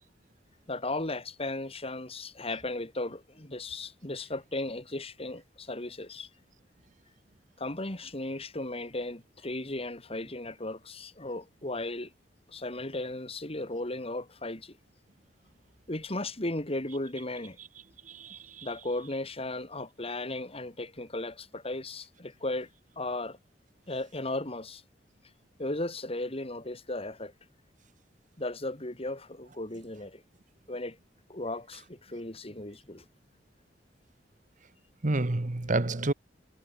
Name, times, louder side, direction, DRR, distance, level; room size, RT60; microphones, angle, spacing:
voice 1, 0.7-6.3 7.6-12.1 12.5-14.8 15.9-17.6 18.6-22.7 23.0-23.4 23.9-24.8 25.6-27.3 28.4-30.2 30.7-31.0 31.3-33.0, left 2 dB, 35° left, 3.2 m, -36 dB
voice 2, 18.1-18.7 35.0-36.1, right 2 dB, 45° right, 1.1 m, -29 dB
head